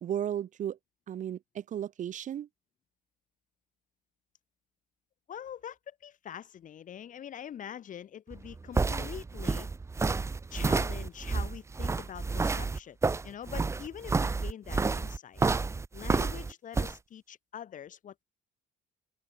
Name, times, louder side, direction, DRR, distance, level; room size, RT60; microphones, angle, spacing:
voice 1, 0.0-0.8 1.1-2.5, right 10 dB, 50° right, 0.8 m, -34 dB
voice 2, 5.3-9.7 10.5-13.0 13.2-15.4 15.9-18.2, left 9 dB, 50° left, 2.2 m, -44 dB
sound 1, 8.3-16.9, right 4 dB, 15° right, 0.6 m, -30 dB
open air
cardioid pair, 110°, 17 cm